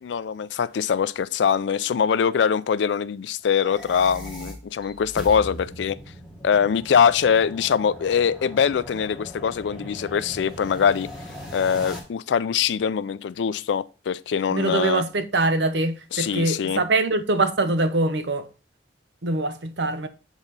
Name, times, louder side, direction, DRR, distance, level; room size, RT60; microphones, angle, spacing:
voice 1, 0.0-6.0 6.4-11.1 11.5-15.0 16.1-16.8, left 7 dB, 85° left, 0.4 m, -23 dB
sound 1, 3.5-12.0, equal, 5° right, 1.6 m, -39 dB
voice 2, 14.5-18.5 19.2-20.1, right 2 dB, 80° right, 0.8 m, -23 dB
7.2 x 4.0 x 4.0 m
head